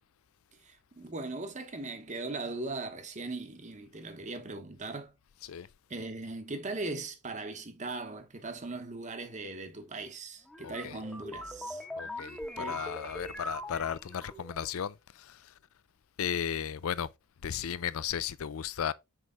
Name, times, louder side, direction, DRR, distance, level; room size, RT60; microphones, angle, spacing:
voice 1, 0.6-5.1 5.9-11.8 12.6-12.8, right 3 dB, 35° right, 1.0 m, -39 dB
sound 1, 10.5-14.7, left 1 dB, 5° left, 0.9 m, -41 dB
voice 2, 10.6-11.0 12.0-15.5 16.2-17.1 17.4-18.9, left 8 dB, 70° left, 0.4 m, -35 dB
6.4 x 4.7 x 3.7 m
head